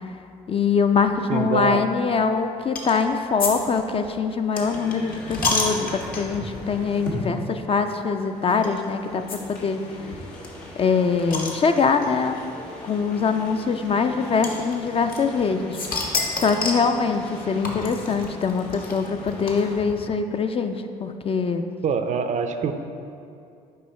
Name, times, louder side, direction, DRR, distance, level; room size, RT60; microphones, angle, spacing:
voice 1, 0.5-9.8 10.8-12.4 12.8-16.1 16.4-21.6, left 5 dB, 35° left, 7 dB, 0.4 m, -23 dB
voice 2, 1.3-1.9 21.8-22.7, right 5 dB, 45° right, 8 dB, 0.4 m, -24 dB
sound 1, 2.7-3.0 3.4-6.5 7.1-7.3 7.5-7.6 8.6-8.8 9.3-9.4 9.7-9.8 9.9-10.0 10.4-12.1 13.0-13.1 14.4-15.4 15.7-16.9 17.6-19.9, left 3 dB, 55° left, 1.0 m, -29 dB
sound 2, 4.6-19.8, left 1 dB, 80° left, 1.1 m, -39 dB
6.8 x 4.7 x 3.2 m, 2.5 s
hypercardioid pair, 55°, 17 cm